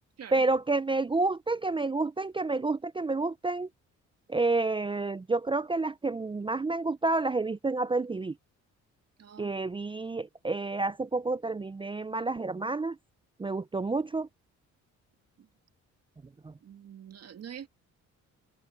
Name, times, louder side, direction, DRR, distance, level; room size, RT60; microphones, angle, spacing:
voice 1, 0.3-3.7 4.3-8.3 9.4-13.0 13.4-14.3 16.4-16.5, right 3 dB, 15° right, 0.5 m, -29 dB
voice 2, 9.2-9.5 15.4-15.5 16.6-17.7, right 8 dB, 55° right, 2.1 m, -45 dB
cardioid pair, 90°, 30 cm